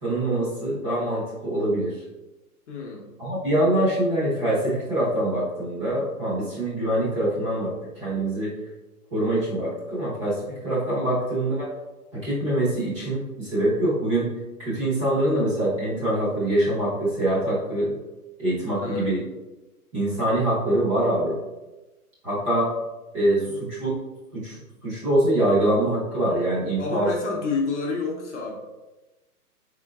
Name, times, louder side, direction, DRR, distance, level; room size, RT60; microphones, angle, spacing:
voice 1, 0.0-2.0 3.2-8.5 9.1-11.7 12.1-14.3 14.6-18.0 18.4-19.2 19.9-21.4 22.2-22.7 23.1-23.9 24.3-27.1, right 1 dB, 20° right, -9 dB, 1.0 m, -24 dB
voice 2, 2.7-3.1 10.9-11.1 15.3-15.5 18.8-19.1 23.4-23.6 26.8-28.5, left 4 dB, 50° left, -1 dB, 0.8 m, -30 dB
3.8 x 3.6 x 2.3 m, 1.1 s
hypercardioid pair, 160°, 47 cm